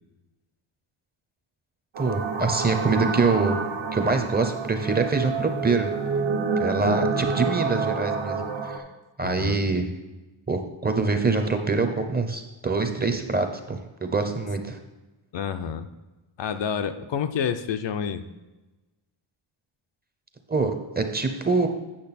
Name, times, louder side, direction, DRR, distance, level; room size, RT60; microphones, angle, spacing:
sound 1, 1.9-8.8, right 5 dB, 75° right, 1.2 m, -28 dB
voice 1, 2.0-3.6 3.9-5.9 6.6-8.8 9.2-9.9 10.5-14.8 20.5-21.7, right 3 dB, 20° right, 6 dB, 0.6 m, -25 dB
voice 2, 9.2-9.6 15.3-15.9 16.4-18.2, left 7 dB, 65° left, 9 dB, 0.6 m, -29 dB
8.7 x 6.2 x 4.1 m, 1.1 s
wide cardioid pair, 155°, 48 cm